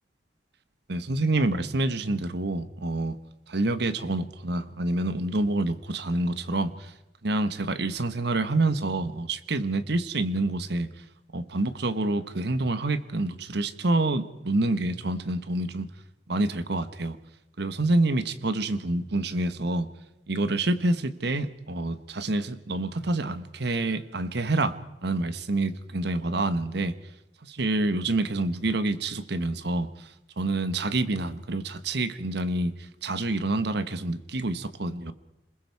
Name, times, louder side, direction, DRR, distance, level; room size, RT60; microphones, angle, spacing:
voice 1, 0.9-3.2 3.5-6.9 7.2-10.9 11.3-15.9 16.3-17.2 17.6-19.9 20.3-24.8 25.0-26.9 27.4-35.1, right 2 dB, 65° right, 12 dB, 1.2 m, -27 dB
27.5 x 21.0 x 4.8 m, 0.94 s
head